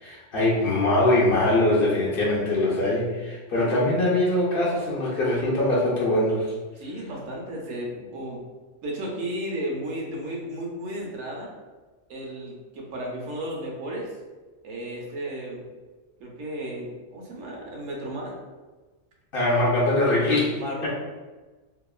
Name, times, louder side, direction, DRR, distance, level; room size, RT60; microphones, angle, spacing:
voice 1, 0.0-6.5 19.3-20.6, left 1 dB, 55° left, -5 dB, 0.7 m, -22 dB
voice 2, 6.8-8.4 8.8-11.5 12.1-14.1 14.6-15.6 16.2-18.4 20.6-20.9, right 1 dB, 80° right, -2 dB, 1.0 m, -34 dB
2.8 x 2.3 x 2.3 m, 1.3 s
omnidirectional pair, 1.3 m